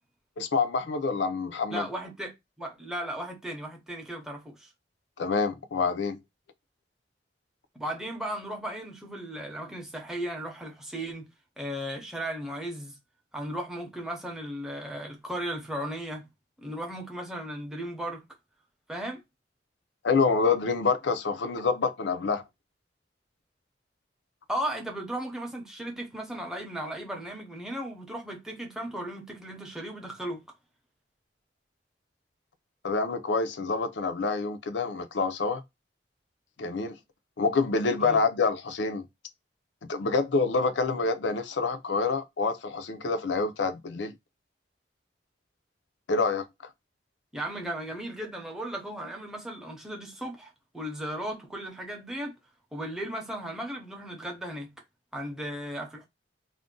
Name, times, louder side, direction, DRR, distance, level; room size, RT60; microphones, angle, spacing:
voice 1, 0.4-1.9 5.2-6.2 20.0-22.4 32.8-35.6 36.6-37.0 37.4-39.1 39.9-44.1 46.1-46.5, left 4 dB, 80° left, 0.5 m, -27 dB
voice 2, 1.7-4.7 7.7-11.3 11.6-13.0 13.3-16.3 16.6-18.2 18.9-19.2 24.5-30.4 38.0-38.2 47.3-52.4 52.7-54.7 55.1-56.1, right 1 dB, 5° right, 0.6 m, -36 dB
2.5 x 2.1 x 3.7 m
head